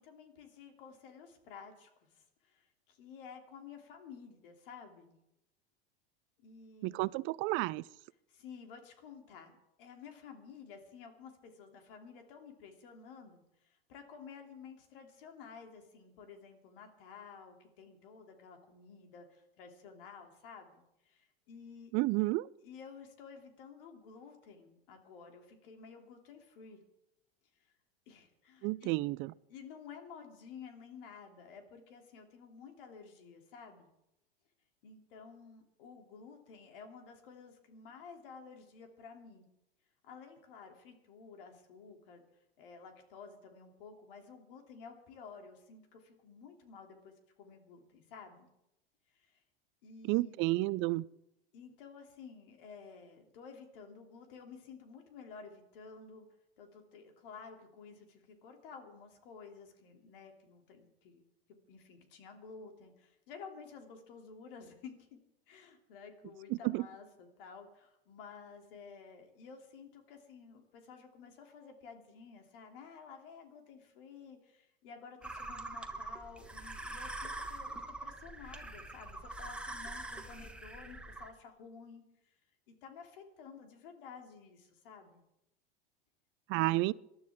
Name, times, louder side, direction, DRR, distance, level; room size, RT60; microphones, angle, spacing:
voice 1, 0.0-5.1 6.4-7.2 8.3-21.9 22.6-26.8 28.1-28.9 29.5-33.9 34.8-39.4 40.0-42.2 42.6-47.1 47.4-48.5 49.1-49.4 49.8-50.4 51.5-56.3 56.6-61.3 61.7-65.2 65.5-82.0 82.7-85.2 86.5-86.9, left 5 dB, 65° left, 3.1 m, -52 dB
voice 2, 6.8-7.8 21.9-22.5 28.6-29.3 50.1-51.1 66.5-66.9 86.5-86.9, right 20 dB, 40° right, 0.5 m, -31 dB
sound 1, 75.2-81.3, right 2 dB, 5° right, 1.5 m, -44 dB
26.5 x 12.0 x 3.7 m
hypercardioid pair, 90°, 30 cm